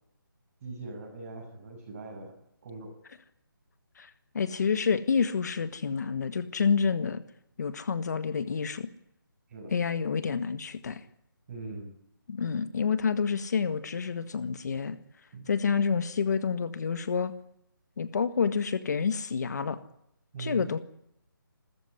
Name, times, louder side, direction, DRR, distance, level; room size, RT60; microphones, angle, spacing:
voice 1, 0.6-2.3 2.6-3.0 9.5-9.7 11.5-11.9 15.3-15.5 20.3-20.6, right 3 dB, 30° right, 0 dB, 7.1 m, -41 dB
voice 2, 4.0-7.2 7.6-8.9 9.7-11.0 12.3-15.0 15.5-17.3 18.0-19.8 20.4-20.8, left 6 dB, 50° left, 10 dB, 1.7 m, -28 dB
28.0 x 14.0 x 9.9 m, 0.76 s
figure-of-eight pair, 165°, 12 cm